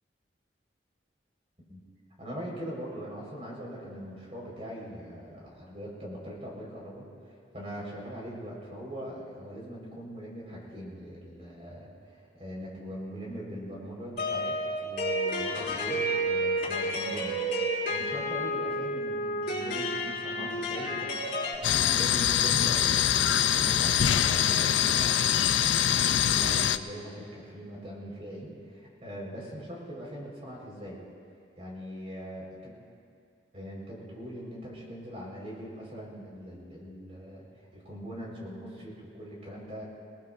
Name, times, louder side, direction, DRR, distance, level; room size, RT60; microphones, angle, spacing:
voice 1, 2.2-7.1 7.5-31.0 31.6-32.7 33.5-37.5 37.7-39.8, equal, 35° right, -4 dB, 4.7 m, -41 dB
sound 1, 14.2-21.5, equal, 50° left, 5.3 m, -30 dB
sound 2, 21.6-26.8, left 10 dB, 90° left, 0.5 m, -24 dB
27.0 x 19.0 x 2.6 m, 2.2 s
head